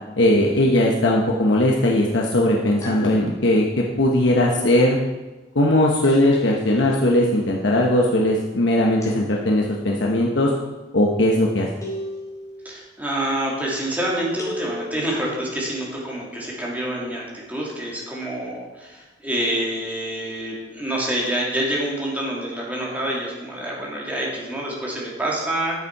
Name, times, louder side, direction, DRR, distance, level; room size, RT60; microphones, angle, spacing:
voice 1, 0.2-5.0 5.5-10.5 10.9-11.7, left 1 dB, 70° left, -2 dB, 1.1 m, -19 dB
sound 1, 2.8-3.6 6.0-6.8 9.0-9.8 11.8-12.6 14.4-15.2, left 1 dB, 20° left, 3.0 m, -35 dB
voice 2, 12.6-25.9, right 1 dB, 10° right, -5 dB, 2.8 m, -27 dB
10.5 x 8.3 x 4.7 m, 1.2 s
head